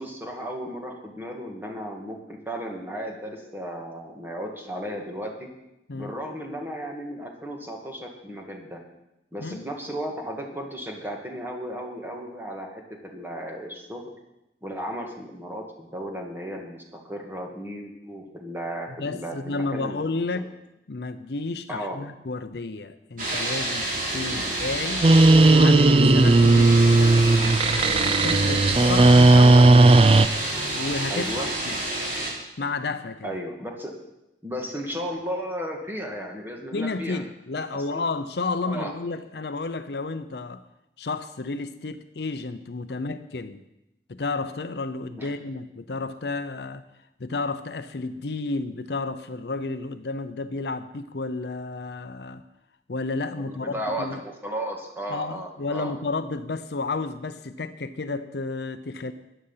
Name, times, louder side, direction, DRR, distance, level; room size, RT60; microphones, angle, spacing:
voice 1, 0.0-5.5 5.9-8.8 9.3-14.0 14.6-20.5 21.7-22.0 24.3-24.5 31.1-31.5 33.2-33.9 34.4-37.2 37.7-38.0 38.7-38.9 45.2-45.4 53.4-55.9, equal, 10° right, 0 dB, 2.0 m, -35 dB
voice 2, 19.0-20.5 20.9-25.0 25.5-29.9 30.7-31.8 32.6-33.4 36.7-40.6 41.0-43.6 44.1-46.8 47.2-52.4 52.9-54.2 55.1-59.1, left 3 dB, 65° left, 11 dB, 0.6 m, -32 dB
sound 1, 23.2-32.3, right 1 dB, 50° right, 3.6 m, -29 dB
sound 2, 25.0-30.3, right 2 dB, 30° right, 0.4 m, -15 dB
14.5 x 10.0 x 5.7 m, 0.89 s
head